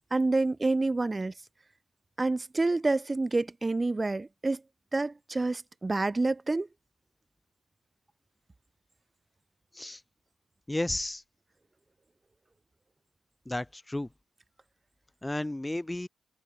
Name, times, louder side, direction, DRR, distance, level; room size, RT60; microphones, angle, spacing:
voice 1, 0.1-1.3 2.2-4.6 4.9-6.7, right 2 dB, 25° right, 1.0 m, -28 dB
voice 2, 10.7-11.2 13.5-14.1 15.2-16.1, left 1 dB, 15° left, 1.1 m, -32 dB
supercardioid pair, 50°, 0 cm